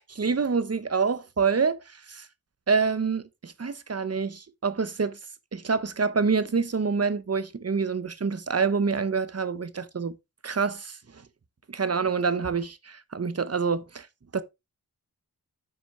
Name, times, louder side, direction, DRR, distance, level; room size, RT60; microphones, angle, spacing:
voice 1, 0.0-2.3 2.7-5.2 5.5-10.1 10.4-11.0 11.7-14.1 14.3-14.4, right 5 dB, 40° right, 1.0 m, -27 dB
9.5 x 6.0 x 4.3 m
wide cardioid pair, 110°, 37 cm